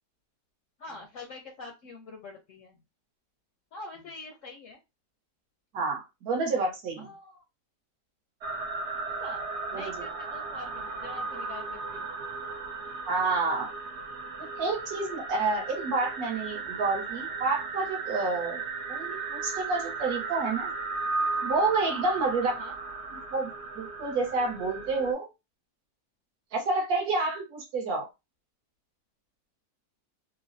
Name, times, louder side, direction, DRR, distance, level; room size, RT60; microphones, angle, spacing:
voice 1, 0.8-2.8 3.7-4.8 7.0-7.4 9.2-12.1 22.4-22.7, left 3 dB, 70° left, 3 dB, 0.7 m, -45 dB
voice 2, 5.7-7.1 9.7-10.1 13.1-13.7 14.4-18.6 18.9-20.7 21.4-22.5 23.1-25.3 26.5-28.1, right 3 dB, 70° right, 2 dB, 1.2 m, -29 dB
sound 1, 8.4-25.1, right 4 dB, 90° right, 0.6 m, -35 dB
3.2 x 2.0 x 2.6 m, 0.25 s
omnidirectional pair, 1.8 m